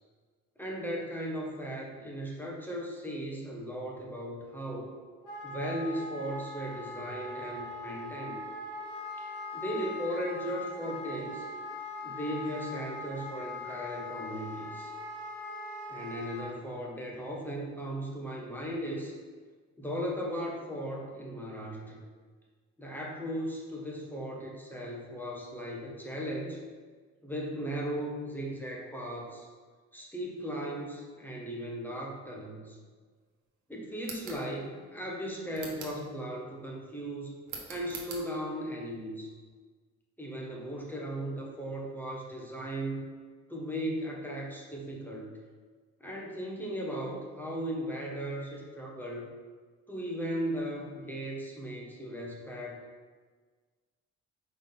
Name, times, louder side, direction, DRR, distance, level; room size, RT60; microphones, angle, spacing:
voice 1, 0.6-4.9 5.4-8.4 9.2-11.5 12.0-14.9 15.9-19.1 19.8-22.0 22.8-26.6 27.2-29.5 29.9-32.8 33.7-37.4 37.7-39.3 40.2-43.1 43.5-45.3 46.0-49.3 49.9-52.8, equal, 5° left, -2 dB, 1.2 m, -37 dB
Wind instrument woodwind instrument, 5.2-16.5, left 2 dB, 85° left, 1.6 m, -41 dB
sound 1, 34.0-34.4 35.5-36.0 37.5-38.2, right 5 dB, 85° right, 1.1 m, -43 dB
4.8 x 3.7 x 5.4 m, 1.5 s
cardioid pair, 90°, 30 cm